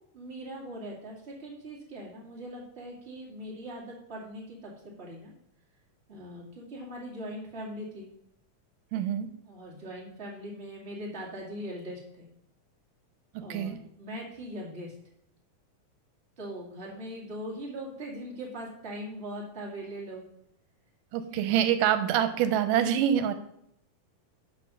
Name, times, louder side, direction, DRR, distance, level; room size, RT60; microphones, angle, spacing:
voice 1, 0.1-5.3 6.1-8.1 9.5-12.3 13.4-14.9 16.4-20.2, equal, 20° right, -3 dB, 2.1 m, -40 dB
voice 2, 8.9-9.3 13.5-13.8 21.1-23.3, right 10 dB, 90° right, 9 dB, 2.3 m, -25 dB
11.0 x 4.1 x 6.2 m, 0.73 s
omnidirectional pair, 3.7 m